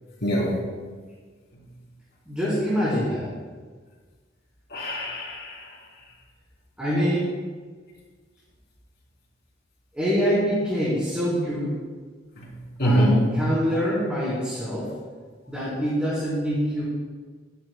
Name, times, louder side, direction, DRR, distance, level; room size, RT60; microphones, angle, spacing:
voice 1, 0.2-0.6 4.7-5.7 12.4-12.5 12.8-13.3, equal, 60° left, -3 dB, 3.4 m, -23 dB
voice 2, 2.3-3.3 6.8-7.3 9.9-11.7 12.8-14.9 15.5-16.8, equal, 5° right, -10 dB, 3.9 m, -25 dB
22.5 x 10.5 x 2.2 m, 1.5 s
head